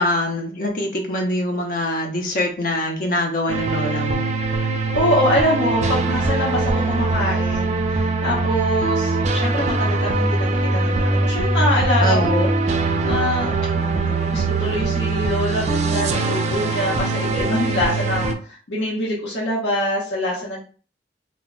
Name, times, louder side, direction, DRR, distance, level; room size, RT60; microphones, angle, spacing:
voice 1, 0.0-4.2 12.0-12.4, left 1 dB, 50° left, 2 dB, 0.5 m, -23 dB
sound 1, 3.5-18.3, right 3 dB, 40° right, 0.3 m, -22 dB
voice 2, 4.9-20.6, left 1 dB, 80° left, -6 dB, 0.8 m, -25 dB
2.1 x 2.1 x 3.6 m, 0.39 s
head